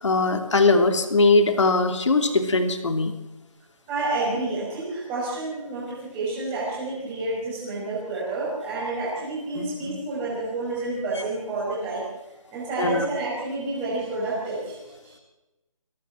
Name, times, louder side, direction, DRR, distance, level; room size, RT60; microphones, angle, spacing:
voice 1, 0.0-3.1 9.6-9.9 12.8-13.0, left 3 dB, 55° left, 7 dB, 2.9 m, -21 dB
voice 2, 3.9-12.1 12.5-14.8 15.0-15.2, right 2 dB, 10° right, -6 dB, 5.6 m, -29 dB
22.5 x 17.5 x 7.5 m, 1.0 s
figure-of-eight pair, 170°, 19 cm